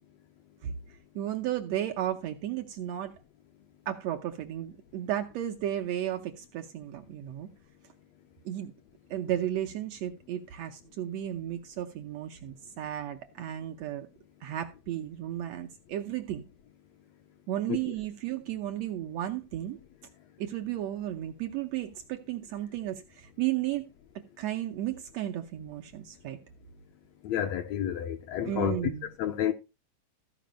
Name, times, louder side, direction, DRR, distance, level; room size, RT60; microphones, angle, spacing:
voice 1, 1.1-3.2 3.9-7.5 8.4-8.7 9.1-14.1 14.4-16.4 17.5-19.8 20.4-23.8 24.4-26.4 28.4-29.1, right 12 dB, 75° right, 1.7 m, -34 dB
voice 2, 27.2-28.8 29.2-29.5, left 10 dB, 75° left, 1.7 m, -30 dB
14.5 x 5.1 x 5.1 m
omnidirectional pair, 3.7 m